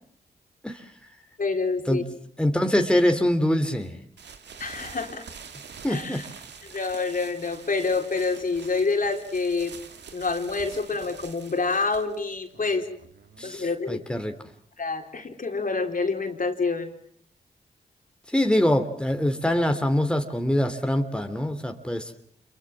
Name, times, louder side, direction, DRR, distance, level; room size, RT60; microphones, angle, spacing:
voice 1, 1.4-2.0 4.6-5.2 5.9-6.2 6.7-9.7 10.1-12.9 13.4-14.0 14.8-16.9, left 4 dB, 50° left, 4 dB, 4.0 m, -27 dB
voice 2, 2.4-4.0 5.8-6.2 13.4-14.4 18.3-22.1, left 1 dB, 5° left, 5 dB, 2.9 m, -24 dB
sound 1, 4.2-13.8, right 6 dB, 80° right, 2.1 m, -46 dB
27.0 x 23.0 x 7.4 m, 0.65 s
supercardioid pair, 45°, 18 cm